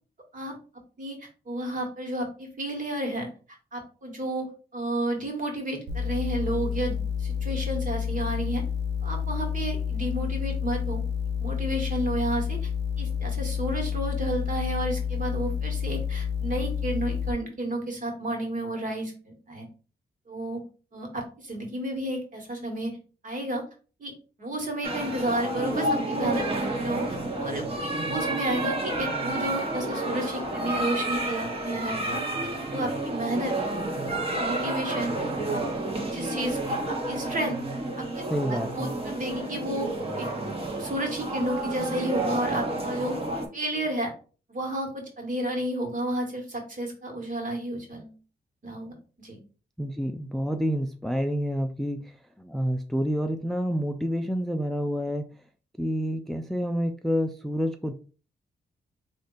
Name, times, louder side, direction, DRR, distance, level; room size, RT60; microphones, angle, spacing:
voice 1, 1.0-3.3 3.7-4.5 4.7-8.6 9.0-11.0 11.4-12.7 13.0-19.7 20.3-20.6 20.9-23.0 23.2-23.6 24.0-24.1 24.4-26.5 26.8-27.7 28.0-33.6 34.1-35.1 35.5-35.6 36.0-37.6 38.0-38.2 38.5-39.9 40.2-40.3 40.8-43.2 43.5-44.1 44.5-48.1 48.6-49.4, right 1 dB, 50° right, 1 dB, 1.6 m, -31 dB
sound 1, 5.9-17.3, left 7 dB, 80° right, 0.8 m, -29 dB
sound 2, 24.8-43.5, right 2 dB, 35° right, 1.2 m, -30 dB
voice 2, 38.3-38.9 49.8-55.3 55.8-57.9, equal, ahead, 6 dB, 0.4 m, -28 dB
3.5 x 2.6 x 4.0 m, 0.37 s
cardioid pair, 70°, 18 cm